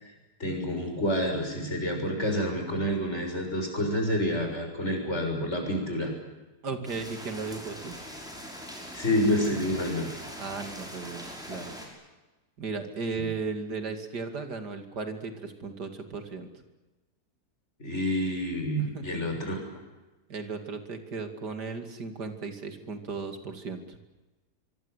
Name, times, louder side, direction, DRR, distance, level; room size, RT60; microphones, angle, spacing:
voice 1, 0.4-6.1 8.9-10.1 17.8-19.6, equal, 45° left, 3 dB, 7.1 m, -28 dB
voice 2, 6.6-7.9 10.4-11.7 12.6-16.5 18.9-19.2 20.3-24.0, right 4 dB, 90° right, 7 dB, 3.1 m, -36 dB
sound 1, 6.8-11.9, equal, ahead, 6.5 m, -42 dB
24.5 x 24.5 x 8.2 m, 1.1 s
omnidirectional pair, 1.7 m